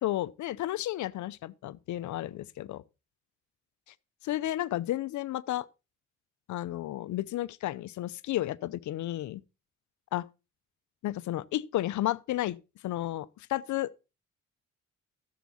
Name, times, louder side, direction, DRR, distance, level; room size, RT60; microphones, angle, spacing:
voice 1, 0.0-2.8 4.2-5.7 6.5-9.4 10.1-10.3 11.0-12.6 12.8-14.0, left 14 dB, 75° left, 0.7 m, -32 dB
14.0 x 7.4 x 4.2 m
cardioid pair, 90°, 30 cm